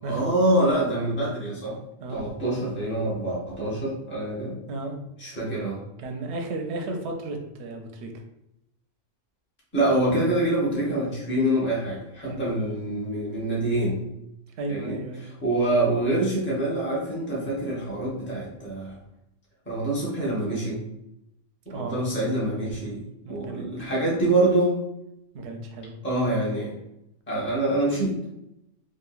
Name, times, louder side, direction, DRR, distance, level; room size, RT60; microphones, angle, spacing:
voice 1, 0.0-1.8 2.1-4.6 5.2-5.8 9.7-14.0 14.7-19.0 19.7-20.8 21.7-24.8 26.0-26.7 27.3-28.2, right 1 dB, 10° left, -6 dB, 0.7 m, -25 dB
voice 2, 6.0-8.1 12.2-12.5 14.6-15.3 21.7-22.0 23.2-24.2 25.3-26.0, right 2 dB, 65° right, 3 dB, 0.8 m, -34 dB
2.9 x 2.5 x 2.4 m, 0.84 s
omnidirectional pair, 1.3 m